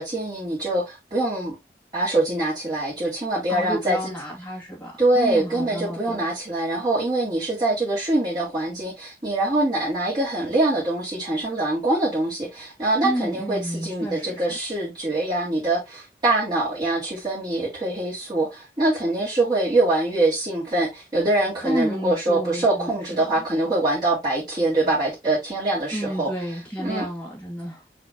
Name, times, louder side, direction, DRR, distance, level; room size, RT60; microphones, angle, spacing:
voice 1, 0.0-1.5 1.9-4.0 5.0-26.3 26.8-27.1, right 2 dB, 25° right, 3.8 m, -24 dB
voice 2, 3.5-6.3 13.0-14.6 21.6-23.4 25.9-27.8, right 1 dB, 10° left, 2.2 m, -31 dB
6.1 x 5.5 x 2.8 m
head